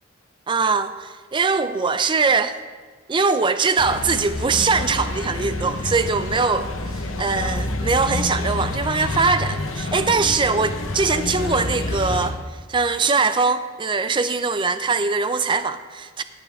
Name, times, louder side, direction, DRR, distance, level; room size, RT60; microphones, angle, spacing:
voice 1, 0.5-2.5 3.1-6.7 7.2-12.4 12.7-16.2, right 4 dB, 25° right, 11 dB, 0.4 m, -21 dB
sound 1, 3.8-12.3, left 2 dB, 85° left, 1.0 m, -28 dB
14.5 x 8.7 x 3.5 m, 1.4 s
head